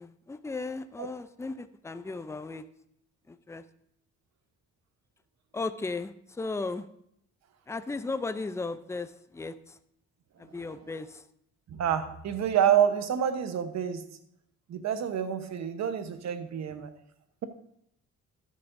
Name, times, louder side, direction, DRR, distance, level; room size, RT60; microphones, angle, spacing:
voice 1, 0.0-2.6 3.3-3.6 5.5-6.9 7.7-9.8 10.4-11.2, left 3 dB, 10° left, 11 dB, 0.5 m, -36 dB
voice 2, 11.7-14.0 14.7-16.9, right 9 dB, 60° right, 9 dB, 1.1 m, -28 dB
12.5 x 10.5 x 2.6 m, 0.73 s
cardioid pair, 90°, 30 cm